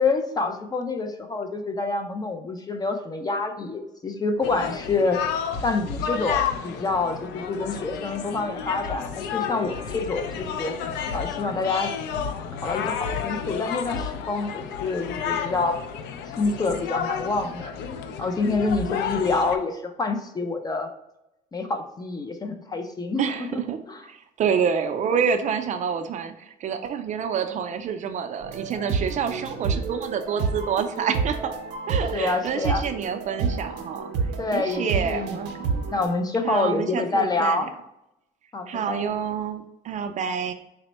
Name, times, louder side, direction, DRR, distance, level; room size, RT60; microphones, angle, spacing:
voice 1, 0.0-5.2 5.6-10.3 10.6-10.7 11.1-11.9 12.6-15.8 16.3-17.7 18.2-20.9 21.5-23.6 23.9-24.0 32.1-32.8 34.4-35.4 35.6-37.7 38.5-39.0, left 3 dB, 25° left, 6 dB, 0.4 m, -27 dB
sound 1, 4.4-19.6, left 7 dB, 85° left, 0.4 m, -31 dB
voice 2, 23.2-23.8 24.1-31.5 31.9-34.1 34.5-35.5 36.4-37.6 38.7-40.5, right 7 dB, 45° right, 7 dB, 0.4 m, -27 dB
sound 2, 28.4-36.1, right 5 dB, 85° right, 0.7 m, -29 dB
4.2 x 2.0 x 4.1 m, 0.86 s
cardioid pair, 110°, 17 cm